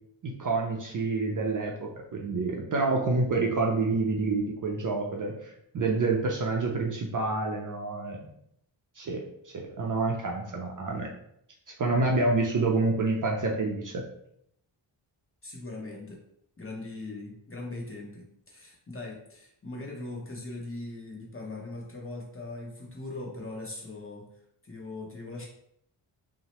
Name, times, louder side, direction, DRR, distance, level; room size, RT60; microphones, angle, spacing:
voice 1, 0.2-8.3 9.0-9.2 9.5-11.1 11.7-14.0, right 3 dB, 45° right, 0 dB, 0.4 m, -28 dB
voice 2, 15.4-16.2 16.6-24.2 24.6-25.5, left 2 dB, 25° left, -2 dB, 0.8 m, -40 dB
2.7 x 2.0 x 2.9 m, 0.73 s
cardioid pair, 65°, 50 cm